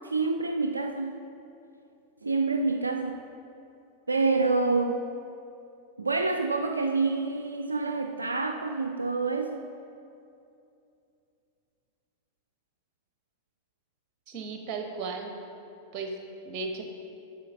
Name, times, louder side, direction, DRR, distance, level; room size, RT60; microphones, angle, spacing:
voice 1, 0.0-1.2 2.2-3.2 4.1-5.0 6.0-9.6, right 3 dB, 80° right, 5 dB, 0.3 m, -27 dB
voice 2, 14.3-15.3 15.9-16.1 16.4-16.8, right 4 dB, 35° right, 3 dB, 1.1 m, -35 dB
8.3 x 5.6 x 5.8 m, 2.6 s
figure-of-eight pair, 90°, 0 cm